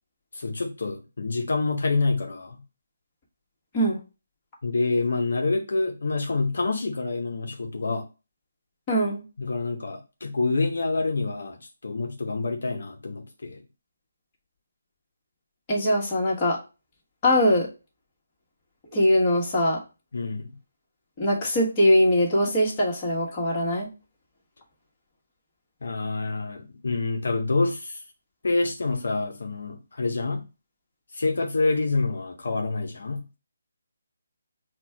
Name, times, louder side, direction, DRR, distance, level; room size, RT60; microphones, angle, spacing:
voice 1, 0.3-2.6 4.6-8.1 9.4-13.6 20.1-20.6 25.8-28.0 28.4-30.4 31.1-33.3, left 3 dB, 70° left, 0.6 m, -27 dB
voice 2, 8.9-9.2 15.7-16.6 17.2-17.7 18.9-19.8 21.2-23.9, equal, 20° left, 1.4 m, -22 dB
4.3 x 2.2 x 4.6 m
hypercardioid pair, 160°, 0 cm